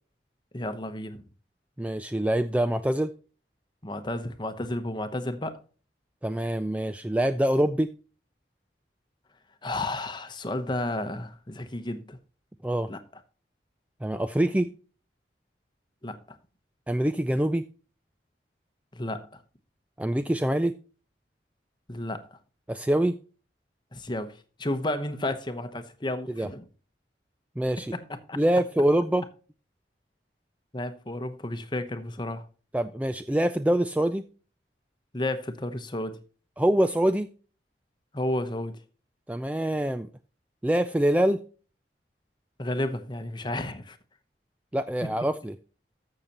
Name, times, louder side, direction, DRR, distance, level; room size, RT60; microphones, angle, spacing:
voice 1, 0.5-1.2 3.8-5.6 9.6-12.2 12.9-13.0 16.0-16.4 18.9-19.4 21.9-22.4 23.9-26.6 27.9-28.0 28.3-28.4 30.7-32.5 35.1-36.2 38.1-38.8 42.6-44.0 45.0-45.1, left 1 dB, 25° left, 0.9 m, -32 dB
voice 2, 1.8-3.1 6.2-7.9 12.6-12.9 14.0-14.7 16.9-17.6 20.0-20.7 22.7-23.2 26.3-26.5 27.6-27.9 28.4-29.2 32.7-34.3 36.6-37.3 39.3-40.1 40.6-41.4 44.7-45.5, right 1 dB, 10° right, 0.3 m, -25 dB
13.5 x 6.5 x 2.9 m
head